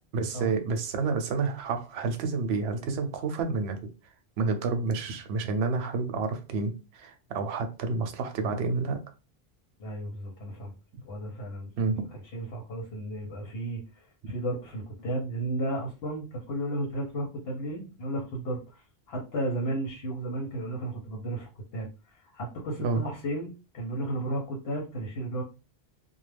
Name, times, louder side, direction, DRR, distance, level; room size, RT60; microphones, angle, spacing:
voice 1, 0.1-3.8 4.4-9.0 11.8-12.0 22.8-23.0, right 4 dB, 90° right, 7 dB, 0.8 m, -29 dB
voice 2, 9.8-10.7 11.0-12.0 12.3-25.4, right 1 dB, 75° left, -1 dB, 0.9 m, -34 dB
2.3 x 2.0 x 3.2 m, 0.31 s
omnidirectional pair, 1.0 m